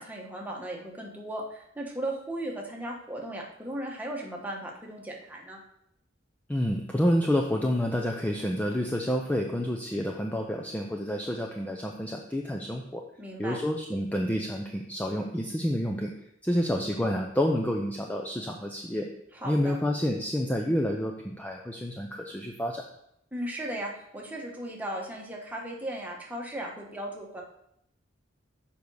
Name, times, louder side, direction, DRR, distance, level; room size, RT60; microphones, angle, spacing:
voice 1, 0.0-5.6 13.2-13.6 19.3-19.8 23.3-27.4, right 1 dB, 10° right, -1 dB, 1.3 m, -36 dB
voice 2, 6.5-13.0 13.4-16.1 16.4-19.1 19.4-22.8, equal, 10° left, 1 dB, 0.5 m, -29 dB
7.2 x 5.3 x 4.8 m, 0.75 s
head